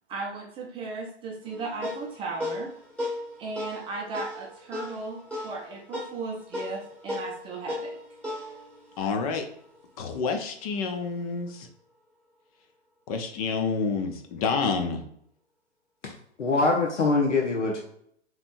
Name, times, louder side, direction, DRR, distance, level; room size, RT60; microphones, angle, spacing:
voice 1, 0.1-2.7 3.4-8.0, right 3 dB, 15° right, -2 dB, 0.6 m, -36 dB
sound 1, 1.4-10.2, left 2 dB, 5° left, 1.7 m, -37 dB
voice 2, 9.0-9.5 10.0-11.7 13.1-15.0, left 5 dB, 30° left, 5 dB, 0.6 m, -28 dB
voice 3, 16.4-17.8, left 3 dB, 85° left, 0 dB, 1.0 m, -23 dB
5.1 x 3.1 x 2.6 m, 0.69 s
hypercardioid pair, 130°, 35 cm